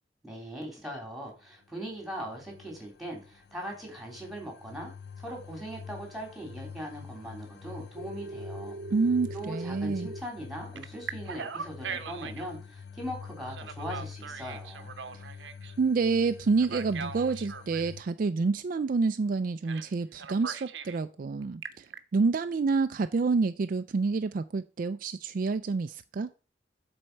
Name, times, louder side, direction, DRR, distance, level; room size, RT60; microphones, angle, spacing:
voice 1, 0.2-4.9 5.2-8.8 9.3-14.9, equal, ahead, 3.1 m, -40 dB
sound 1, 1.7-18.0, left 6 dB, 60° left, 0.5 m, -46 dB
Telephone, 8.0-10.2 10.7-12.5 13.5-15.7 16.6-17.9 19.6-19.9 20.2-21.0 21.4-22.0, right 5 dB, 75° right, 0.8 m, -40 dB
voice 2, 8.9-10.1 15.1-15.2 15.8-26.3, right 4 dB, 50° right, 0.4 m, -28 dB
7.7 x 4.3 x 6.6 m
head